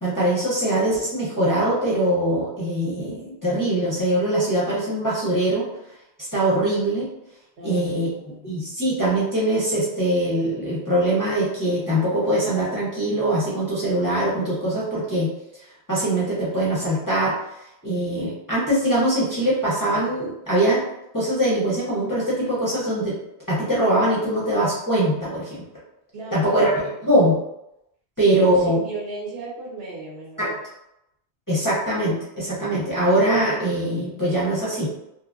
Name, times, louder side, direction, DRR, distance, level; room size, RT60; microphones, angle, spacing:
voice 1, 0.0-5.7 6.2-7.1 7.6-8.1 8.4-15.3 15.9-17.3 17.8-20.8 21.1-23.2 23.5-25.6 26.3-26.7 27.0-27.4 28.2-28.8 30.4-30.5 31.5-34.9, right 1 dB, 20° left, -9 dB, 0.6 m, -22 dB
voice 2, 7.6-8.5 26.1-26.8 28.3-30.6, right 3 dB, 65° right, -5 dB, 1.1 m, -35 dB
2.7 x 2.3 x 2.4 m, 0.85 s
omnidirectional pair, 1.1 m